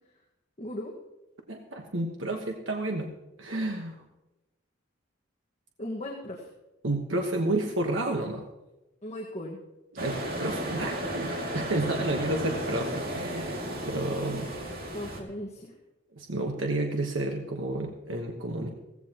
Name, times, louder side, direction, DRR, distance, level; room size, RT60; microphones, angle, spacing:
voice 1, 0.6-1.0 5.8-6.5 9.0-9.6 14.9-15.7, left 1 dB, 35° left, -2 dB, 1.6 m, -37 dB
voice 2, 1.5-3.1 3.4-4.0 6.8-8.4 9.9-14.5 16.2-18.7, right 2 dB, 70° right, 2 dB, 1.3 m, -31 dB
sound 1, 10.0-15.2, right 1 dB, 50° right, 2.3 m, -34 dB
16.0 x 15.5 x 3.0 m, 0.99 s
head